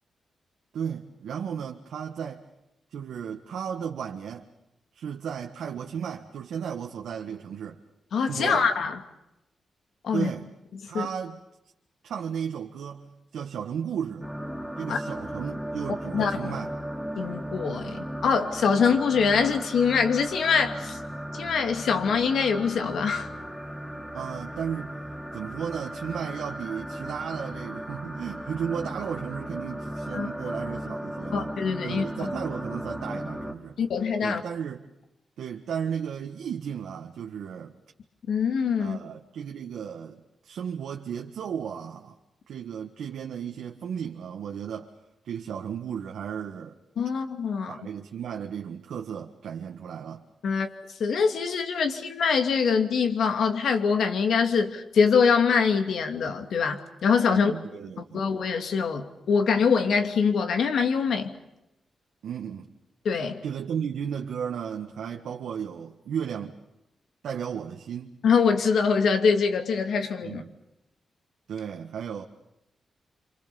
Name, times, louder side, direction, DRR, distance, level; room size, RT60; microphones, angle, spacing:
voice 1, 0.7-2.4 2.9-4.5 4.9-7.8 8.3-8.7 10.1-10.5 10.9-11.4 12.0-14.3 14.8-16.8 24.1-25.0 25.3-31.6 31.8-33.8 34.2-34.9 35.4-37.8 38.8-42.1 42.5-44.9 45.2-46.7 47.7-50.2 57.3-58.3 62.2-62.7 63.4-66.6 67.2-68.2 70.2-70.6 71.5-72.2, right 8 dB, 85° right, 1.7 m, -34 dB
voice 2, 8.1-9.0 10.0-10.3 10.9-11.1 14.9-15.0 16.1-16.5 17.2-21.0 21.3-23.3 30.1-30.3 31.3-32.3 33.8-34.4 38.3-39.0 47.0-47.7 50.4-50.7 51.0-57.5 58.1-61.3 63.0-63.4 68.2-70.4, left 5 dB, 80° left, 2.7 m, -24 dB
sound 1, 14.2-33.5, equal, ahead, 2.9 m, -36 dB
28.0 x 27.0 x 7.1 m
cardioid pair, 100°, 0 cm